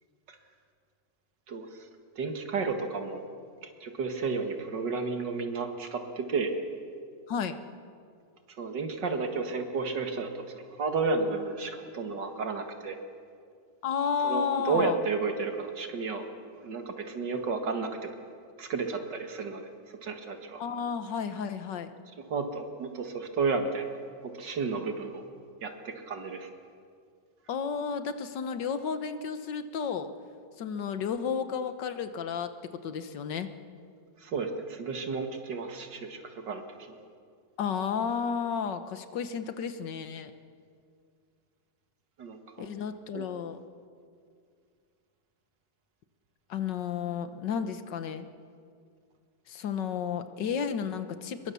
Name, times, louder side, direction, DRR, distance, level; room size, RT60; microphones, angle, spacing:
voice 1, 1.5-1.9 2.2-3.2 3.6-6.5 8.6-13.0 14.2-16.2 16.6-18.1 18.6-20.6 22.3-23.9 24.2-25.2 25.6-26.5 34.2-36.6 36.9-37.0 42.2-42.7 43.1-43.3, right 4 dB, 75° right, 5 dB, 2.5 m, -32 dB
voice 2, 13.8-15.0 20.6-21.9 27.5-30.1 30.6-33.5 37.6-40.3 42.6-43.6 46.5-48.3 49.5-51.5, left 6 dB, 80° left, 10 dB, 1.8 m, -32 dB
24.0 x 22.0 x 7.0 m, 2.3 s
omnidirectional pair, 1.9 m